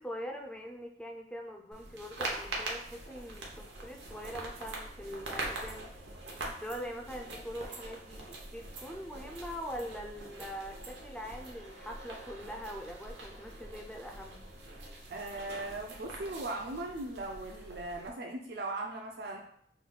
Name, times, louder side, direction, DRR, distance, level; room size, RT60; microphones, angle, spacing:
voice 1, 0.0-6.0 6.6-14.5, equal, 5° left, 2 dB, 0.3 m, -43 dB
sound 1, 1.7-18.1, right 2 dB, 90° right, 0.8 m, -43 dB
voice 2, 15.1-19.4, right 2 dB, 60° right, 1 dB, 0.4 m, -38 dB
3.2 x 2.3 x 3.9 m, 0.69 s
head